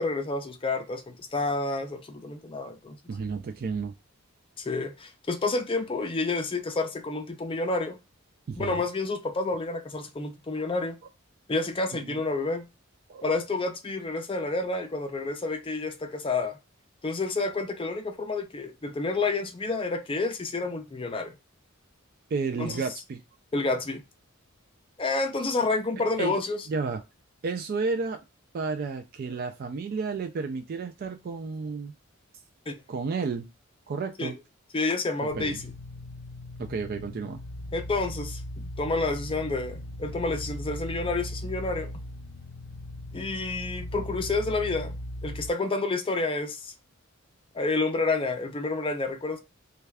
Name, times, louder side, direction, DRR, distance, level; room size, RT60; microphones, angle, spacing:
voice 1, 0.0-3.0 4.6-8.0 8.6-11.0 11.5-12.7 13.2-16.6 17.0-21.3 22.6-22.8 23.5-24.0 25.0-26.6 32.7-32.8 34.2-34.3 34.7-35.6 37.7-41.9 43.1-45.0 45.2-46.7 47.5-49.4, left 3 dB, 25° left, 0.5 m, -29 dB
voice 2, 3.1-3.9 8.5-8.8 10.6-10.7 11.9-12.2 13.1-13.2 22.3-23.2 26.2-26.4 26.7-27.0 27.4-28.2 28.5-31.9 32.9-33.5 33.9-34.4 35.2-35.6 36.6-37.4, right 4 dB, 45° right, 0.3 m, -32 dB
sound 1, 35.3-45.5, left 1 dB, 80° left, 0.5 m, -38 dB
3.3 x 2.3 x 3.3 m
head